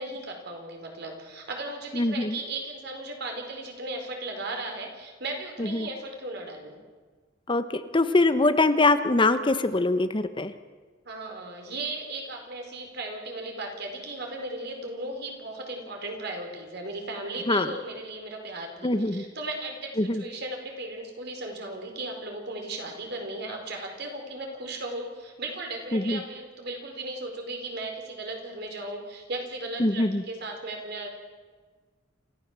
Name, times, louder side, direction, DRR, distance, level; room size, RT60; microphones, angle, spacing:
voice 1, 0.0-6.8 11.0-31.1, right 2 dB, 60° right, 3 dB, 4.7 m, -36 dB
voice 2, 1.9-2.4 5.6-5.9 7.5-10.5 17.5-17.7 18.8-19.2 20.0-20.2 25.9-26.2 29.8-30.2, left 2 dB, 25° left, 11 dB, 0.9 m, -23 dB
28.5 x 15.0 x 7.5 m, 1.4 s
head